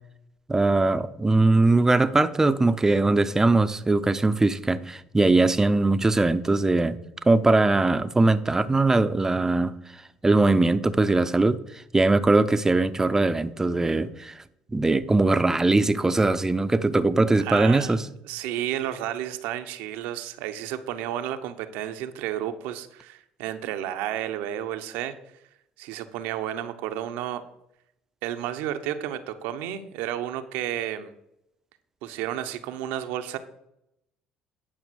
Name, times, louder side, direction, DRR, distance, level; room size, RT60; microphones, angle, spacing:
voice 1, 0.5-7.0 7.2-9.8 10.2-11.6 11.9-14.3 14.7-18.0, right 2 dB, 15° right, 0.7 m, -21 dB
voice 2, 17.3-18.0 18.2-25.1 25.8-27.4 28.2-31.1 32.0-33.4, right 11 dB, 75° right, 0.9 m, -32 dB
9.9 x 5.8 x 6.3 m
hypercardioid pair, 70°, 3 cm